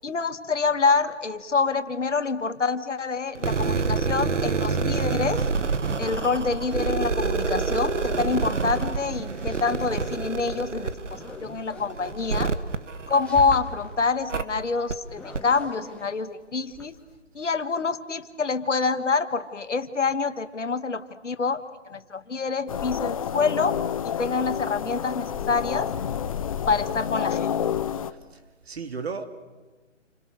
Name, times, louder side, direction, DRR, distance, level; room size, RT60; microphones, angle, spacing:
voice 1, 0.0-5.4 6.0-12.5 13.1-17.0 17.3-23.8 24.0-25.9 26.7-27.6, left 4 dB, 75° left, 11 dB, 2.0 m, -26 dB
sound 1, 3.3-13.7 14.3-14.4 14.9-15.0 15.3-15.4, right 4 dB, 80° right, 1.7 m, -27 dB
sound 2, 9.0-10.3 10.7-12.1 13.0-14.0 15.0-17.2, left 1 dB, 5° left, 1.8 m, -41 dB
sound 3, 22.7-28.1, left 8 dB, 30° left, 0.9 m, -29 dB
voice 2, 28.0-29.3, right 5 dB, 60° right, 9 dB, 2.7 m, -35 dB
29.5 x 26.5 x 6.8 m, 1.3 s
figure-of-eight pair, 150°, 36 cm